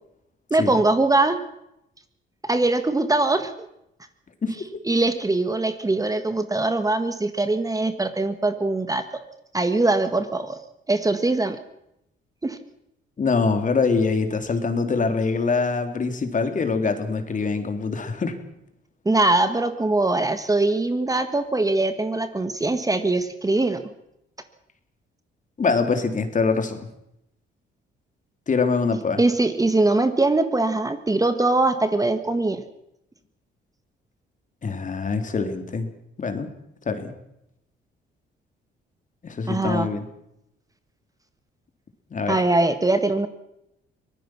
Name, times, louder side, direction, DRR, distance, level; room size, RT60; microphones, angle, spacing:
voice 1, 0.5-1.4 2.4-3.5 4.8-9.2 9.5-10.6 10.9-11.6 12.4-12.6 19.0-23.8 29.2-32.6 39.5-39.9 42.3-43.3, right 2 dB, 15° right, 9 dB, 1.6 m, -22 dB
voice 2, 13.2-18.3 25.6-26.9 28.5-29.2 34.6-35.9 36.2-36.5 36.9-37.1 39.2-40.0 42.1-42.4, left 4 dB, 40° left, 7 dB, 3.0 m, -24 dB
24.0 x 18.5 x 6.1 m, 0.81 s
cardioid pair, 90°, 20 cm